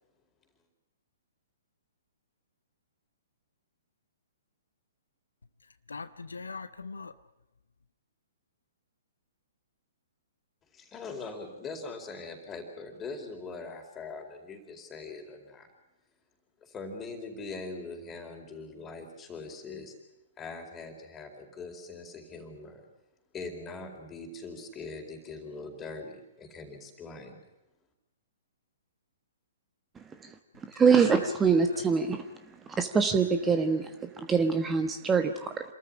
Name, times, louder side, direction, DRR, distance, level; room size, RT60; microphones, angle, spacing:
voice 1, 5.9-7.1 31.0-31.8 33.4-33.6, left 4 dB, 80° left, 12 dB, 0.9 m, -41 dB
voice 2, 10.7-15.7 16.6-19.9 20.4-22.8 23.3-27.5, left 3 dB, 20° left, 3 dB, 4.5 m, -42 dB
voice 3, 30.0-30.3 30.7-32.3 32.8-35.6, right 5 dB, 15° right, 8 dB, 1.2 m, -25 dB
27.0 x 14.0 x 10.0 m, 0.97 s
figure-of-eight pair, 120°, 0 cm